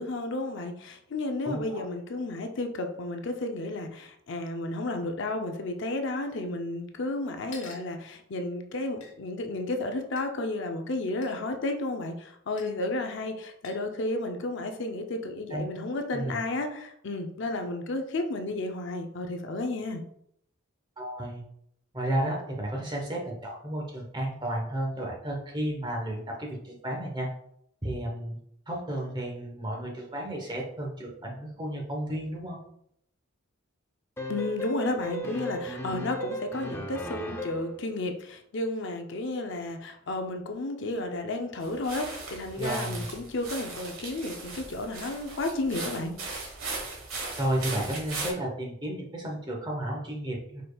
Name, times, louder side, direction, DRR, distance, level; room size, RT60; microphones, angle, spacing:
voice 1, 0.0-20.0 34.3-46.1, left 2 dB, 60° left, 5 dB, 0.5 m, -32 dB
voice 2, 1.4-1.8 15.5-15.7 16.1-16.4 21.0-21.4 21.9-27.3 27.8-28.4 28.7-32.6 42.6-43.0 47.4-50.6, right 1 dB, 20° right, -1 dB, 1.0 m, -32 dB
sound 1, 7.5-7.9 9.0-9.1 10.2-10.3 11.2-11.4 12.6-12.7 13.6-13.9, left 4 dB, 80° left, 1.1 m, -47 dB
sound 2, 34.2-37.8, right 1 dB, 10° left, 0.5 m, -35 dB
sound 3, 41.6-48.3, right 3 dB, 80° right, 1.3 m, -38 dB
5.0 x 4.3 x 2.3 m, 0.72 s
head